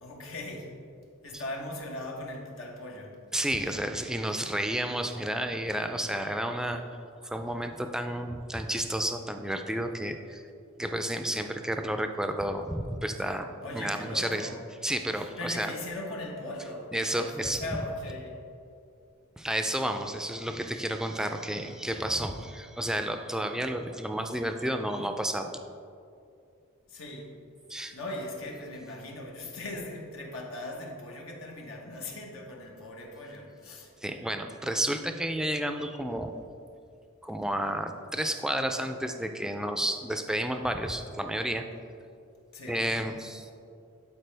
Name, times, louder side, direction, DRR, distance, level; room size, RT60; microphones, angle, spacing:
voice 1, 0.0-0.7 1.2-3.2 13.6-14.6 15.4-18.4 26.9-27.3 27.9-33.9 42.5-43.0, left 1 dB, 85° left, -1 dB, 1.3 m, -39 dB
voice 2, 3.3-6.8 7.2-10.4 10.8-14.6 14.8-15.7 16.9-17.6 19.4-25.5 27.7-28.0 34.0-36.3 37.2-41.7 42.7-43.5, right 1 dB, 5° right, 6 dB, 0.3 m, -31 dB
12.0 x 4.4 x 3.4 m, 2.5 s
head